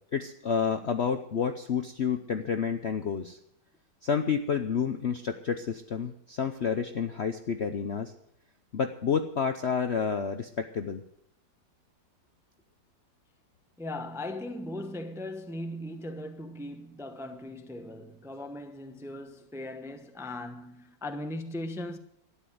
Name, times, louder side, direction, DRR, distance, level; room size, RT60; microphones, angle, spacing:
voice 1, 0.1-3.4 4.0-8.1 8.7-11.0, left 6 dB, 55° left, 0.8 m, -29 dB
voice 2, 13.8-22.0, left 1 dB, ahead, 0.6 m, -38 dB
12.5 x 10.5 x 7.7 m
omnidirectional pair, 2.0 m